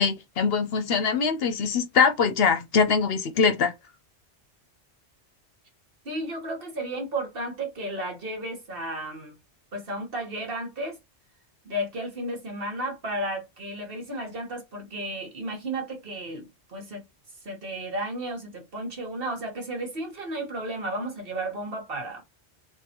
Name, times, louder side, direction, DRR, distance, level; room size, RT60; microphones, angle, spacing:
voice 1, 0.0-3.7, left 5 dB, 65° left, 0.8 m, -23 dB
voice 2, 6.0-9.3 9.7-11.0 11.6-17.0 17.4-22.2, right 1 dB, 55° right, 1.5 m, -33 dB
3.7 x 2.8 x 2.9 m
omnidirectional pair, 1.2 m